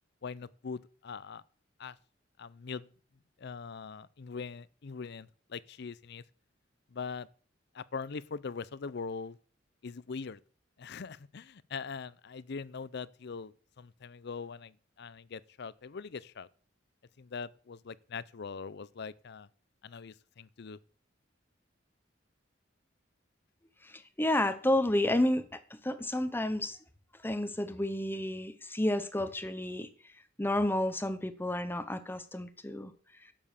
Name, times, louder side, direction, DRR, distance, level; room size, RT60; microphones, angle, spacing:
voice 1, 0.2-1.4 1.8-2.0 2.4-2.9 3.4-6.2 6.9-7.3 7.7-9.4 9.8-10.4 10.8-16.5 17.2-19.5 19.8-20.8, left 5 dB, 60° left, 0.6 m, -42 dB
voice 2, 23.8-26.8 27.2-29.9 30.4-32.9, left 1 dB, 10° left, 0.9 m, -31 dB
11.0 x 7.1 x 6.8 m
head